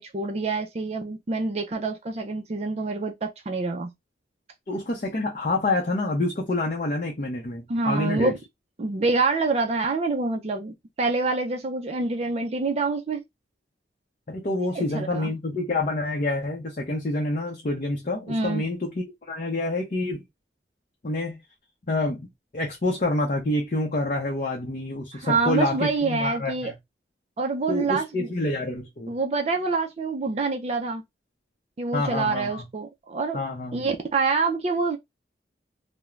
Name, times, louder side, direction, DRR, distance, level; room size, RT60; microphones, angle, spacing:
voice 1, 0.0-3.9 7.7-8.4 8.8-13.2 14.7-15.3 18.3-18.6 25.1-26.7 27.4-28.3 29.1-31.0 31.8-33.4 33.7-35.0, right 3 dB, 35° right, 0.4 m, -26 dB
voice 2, 4.7-8.3 14.3-20.2 21.0-21.4 21.9-26.7 27.7-29.2 31.9-32.7 33.3-33.9, left 2 dB, 45° left, 0.6 m, -27 dB
2.4 x 2.0 x 3.0 m
head